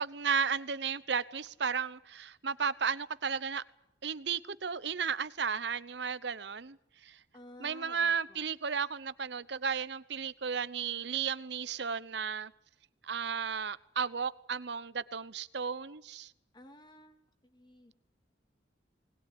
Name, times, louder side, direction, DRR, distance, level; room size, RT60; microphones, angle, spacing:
voice 1, 0.0-3.6 4.0-6.8 7.0-7.2 7.6-12.5 13.0-16.3, right 6 dB, 65° right, 0.8 m, -34 dB
voice 2, 7.3-8.5 16.5-17.2 17.4-17.9, left 1 dB, 25° left, 2.4 m, -53 dB
20.5 x 20.0 x 9.7 m
head